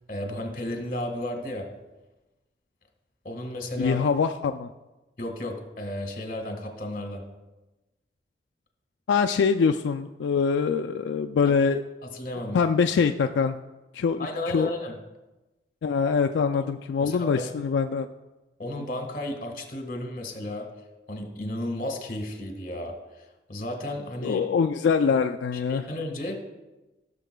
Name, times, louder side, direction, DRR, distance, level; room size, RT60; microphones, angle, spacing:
voice 1, 0.1-1.7 3.2-4.0 5.2-7.2 11.4-11.6 12.1-12.6 14.2-15.0 17.0-17.5 18.6-20.7 21.1-23.2 23.5-24.4 25.5-26.4, left 1 dB, 50° left, 4 dB, 1.5 m, -33 dB
voice 2, 3.8-4.7 9.1-11.8 12.5-13.6 13.9-14.3 14.5-14.7 15.8-18.1 24.2-25.9, left 5 dB, 90° left, 6 dB, 0.3 m, -24 dB
16.5 x 6.8 x 2.2 m, 1.1 s
head